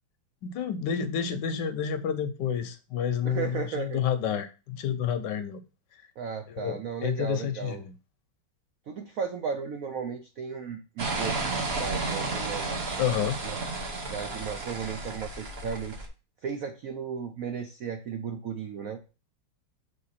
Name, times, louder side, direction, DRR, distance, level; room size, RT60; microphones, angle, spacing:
voice 1, 0.4-5.6 6.5-7.9 13.0-13.4, left 8 dB, 70° left, 1.1 m, -29 dB
voice 2, 3.2-4.0 6.2-7.8 8.9-11.4 11.8-12.7 13.4-13.6 14.0-16.1 16.4-19.0, right 6 dB, 75° right, 0.8 m, -35 dB
sound 1, 11.0-16.1, right 3 dB, 40° right, 0.9 m, -32 dB
6.6 x 3.6 x 4.1 m
omnidirectional pair, 2.2 m